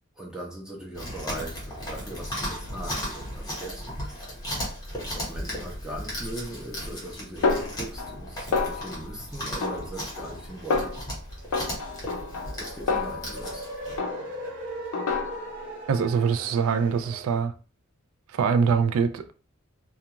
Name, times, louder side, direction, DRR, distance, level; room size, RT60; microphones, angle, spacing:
voice 1, 0.1-4.4 5.1-10.9 12.5-13.7, right 1 dB, 5° right, 0.5 m, -39 dB
Chewing mastication, 0.9-14.0, equal, 15° left, 1.0 m, -36 dB
Snare drum, 7.4-8.3 8.5-9.1 9.6-10.4 10.7-11.1 11.5-13.6 14.0-14.5 14.9-15.6, left 4 dB, 80° left, 0.5 m, -29 dB
sound 1, 10.8-17.3, right 1 dB, 50° right, 0.7 m, -40 dB
voice 2, 15.9-17.5 18.3-19.3, right 6 dB, 75° right, 0.3 m, -23 dB
2.3 x 2.3 x 2.9 m
head